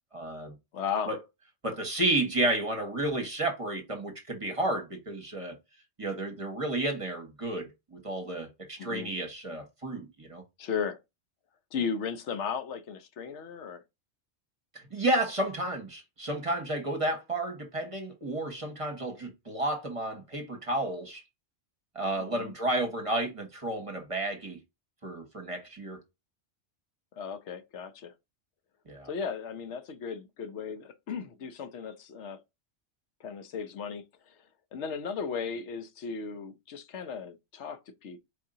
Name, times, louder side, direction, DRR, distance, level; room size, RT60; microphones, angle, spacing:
voice 1, 0.1-0.5 1.1-1.2 1.6-5.5 6.0-10.4 14.7-21.2 21.9-24.6 25.0-26.0 28.9-29.1, right 1 dB, 30° right, 1.2 m, -32 dB
voice 2, 0.7-1.1 8.8-9.1 10.6-11.0 11.7-13.8 22.2-22.5 27.2-28.1 29.1-32.4 33.2-34.5 34.7-38.2, left 6 dB, 85° left, 1.0 m, -36 dB
4.7 x 2.7 x 3.7 m
omnidirectional pair, 1.2 m